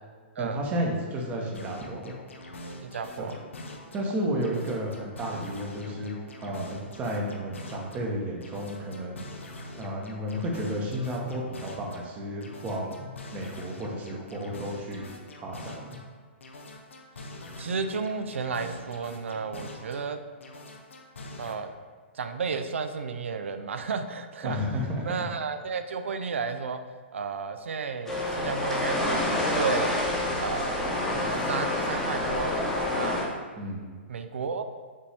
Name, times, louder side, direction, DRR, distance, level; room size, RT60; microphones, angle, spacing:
voice 1, 0.4-2.1 3.2-3.3 3.9-6.1 6.4-9.2 9.7-15.1 15.4-16.0 24.4-25.1 33.6-33.9, equal, 25° right, -1 dB, 0.8 m, -32 dB
sound 1, 1.5-4.1 4.4-8.1 8.4-12.1 12.4-16.1 16.4-20.1 20.4-21.5, left 1 dB, 85° left, 0.6 m, -44 dB
voice 2, 2.8-3.4 17.6-20.2 21.4-21.7 22.1-24.6 25.0-26.8 27.1-29.9 30.4-30.8 31.5-32.5 32.9-33.3 34.1-34.6, right 5 dB, 85° right, 8 dB, 0.4 m, -32 dB
sound 2, 28.1-33.2, left 1 dB, 5° left, 0.9 m, -28 dB
5.2 x 2.7 x 3.3 m, 1.6 s
hypercardioid pair, 130°, 7 cm